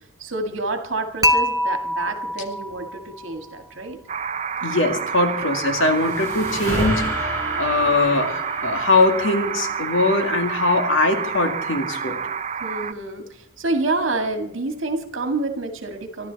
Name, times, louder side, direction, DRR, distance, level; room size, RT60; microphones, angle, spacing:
voice 1, 0.2-4.0 12.6-16.3, right 2 dB, 65° right, 5 dB, 2.0 m, -28 dB
Dishes pots and pans / Chink clink, 1.2-3.4, left 1 dB, 15° right, 0.9 m, -24 dB
sound 1, 4.1-12.9, right 6 dB, 35° right, 0.5 m, -29 dB
voice 2, 4.6-12.2, left 2 dB, 65° left, 5 dB, 2.1 m, -21 dB
sound 2, 5.5-10.8, equal, 15° left, 6.8 m, -31 dB
24.0 x 12.0 x 4.1 m, 0.67 s
head